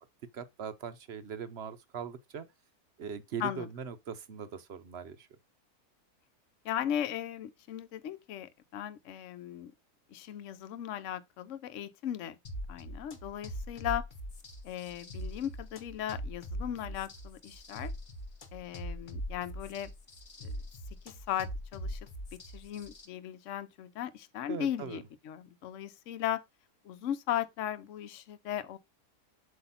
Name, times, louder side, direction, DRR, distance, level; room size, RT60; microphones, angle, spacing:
voice 1, 0.3-2.4 3.0-5.3 24.5-25.0, right 7 dB, 55° right, 0.8 m, -40 dB
voice 2, 6.6-9.7 10.1-12.4 12.7-14.0 14.6-17.9 18.5-19.9 20.4-20.5 21.1-22.0 22.5-26.4 26.8-28.8, left 11 dB, 60° left, 1.0 m, -37 dB
sound 1, 12.4-23.1, equal, 35° left, 1.0 m, -42 dB
7.9 x 2.9 x 5.6 m
omnidirectional pair, 1.6 m